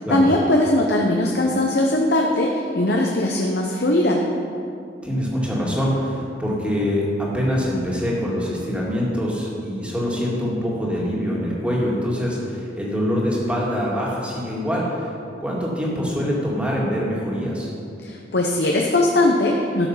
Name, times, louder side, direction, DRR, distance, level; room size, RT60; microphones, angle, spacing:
voice 1, 0.1-4.2 18.0-19.9, left 1 dB, 60° left, 0 dB, 0.8 m, -20 dB
voice 2, 5.0-15.1 15.4-17.7, equal, 5° right, -5 dB, 2.1 m, -24 dB
12.5 x 7.0 x 5.7 m, 2.6 s
head